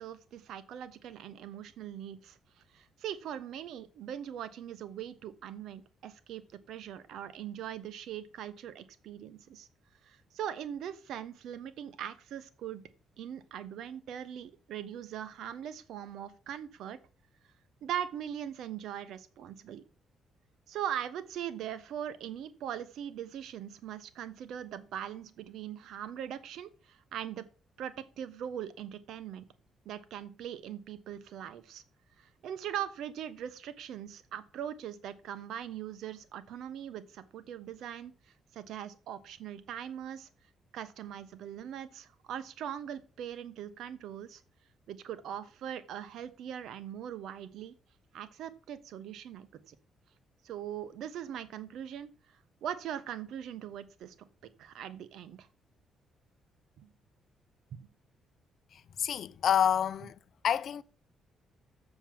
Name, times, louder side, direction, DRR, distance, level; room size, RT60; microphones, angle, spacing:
voice 1, 0.0-2.4 2.7-6.4 6.7-9.7 10.0-12.8 13.2-17.0 17.8-19.8 20.7-27.4 27.8-29.4 29.8-31.8 32.2-38.1 38.5-40.3 40.7-44.4 44.9-47.7 48.1-49.8 50.4-52.1 52.6-54.1 54.6-55.5 56.8-56.9 57.7-57.9, right 10 dB, 80° right, 1.0 m, -41 dB
voice 2, 58.7-60.2 60.4-60.8, left 9 dB, 60° left, 0.5 m, -28 dB
7.0 x 6.9 x 7.6 m
cardioid pair, 90°, 0 cm